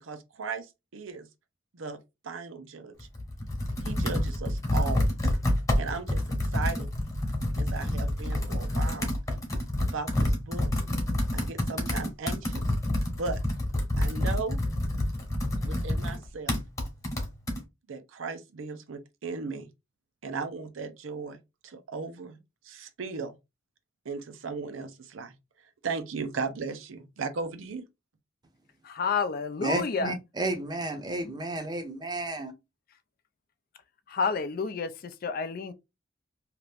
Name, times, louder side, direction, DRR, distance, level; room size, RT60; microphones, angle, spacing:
voice 1, 0.0-1.3 1.7-2.0 2.2-3.1 3.8-5.1 5.8-6.9 7.6-9.1 9.8-10.7 11.3-12.6 13.2-13.4 14.0-14.6 15.6-16.6 17.9-19.7 20.2-21.4 21.6-22.4 22.6-23.3 24.0-25.3 25.8-27.8, right 4 dB, 90° right, 0.6 m, -36 dB
Computer keyboard, 3.0-17.6, left 1 dB, 15° left, 0.9 m, -28 dB
voice 2, 28.8-30.1 34.1-35.7, left 5 dB, 50° left, 0.4 m, -30 dB
voice 3, 29.6-32.5, right 2 dB, 20° right, 0.6 m, -32 dB
2.8 x 2.5 x 3.3 m
head